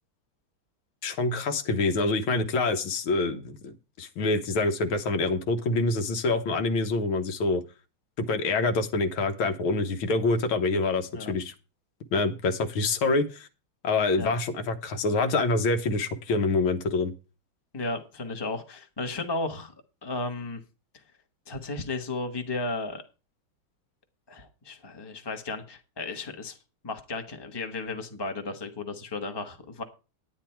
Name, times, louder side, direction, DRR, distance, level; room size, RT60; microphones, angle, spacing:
voice 1, 1.0-7.6 8.2-11.5 12.1-13.5 13.8-17.1, left 3 dB, 85° left, 7 dB, 2.0 m, -26 dB
voice 2, 17.7-19.7 20.0-20.6 21.5-23.0 24.3-26.6 26.8-29.8, left 3 dB, 15° left, 5 dB, 1.1 m, -34 dB
10.5 x 9.5 x 4.5 m, 0.31 s
omnidirectional pair, 2.2 m